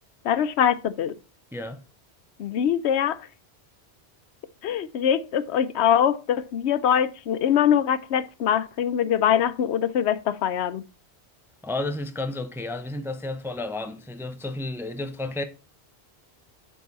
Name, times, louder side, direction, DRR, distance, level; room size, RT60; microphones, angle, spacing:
voice 1, 0.2-1.2 2.4-3.3 4.6-10.8, left 9 dB, 80° left, 0.9 m, -23 dB
voice 2, 1.5-1.8 11.6-15.4, left 2 dB, 5° right, 0.5 m, -32 dB
8.0 x 4.7 x 4.0 m
omnidirectional pair, 1.1 m